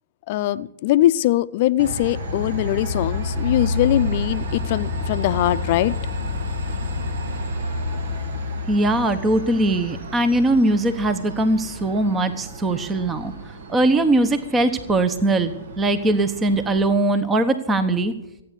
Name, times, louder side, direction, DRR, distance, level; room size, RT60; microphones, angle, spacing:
voice 1, 0.3-5.9, left 14 dB, 50° left, 14 dB, 0.7 m, -21 dB
Train, 1.8-16.9, left 2 dB, 70° right, 2.1 m, -30 dB
voice 2, 8.7-13.3 13.7-18.1, right 2 dB, 15° right, 11 dB, 1.1 m, -20 dB
14.5 x 9.3 x 8.6 m, 0.88 s
hypercardioid pair, 120°, 0 cm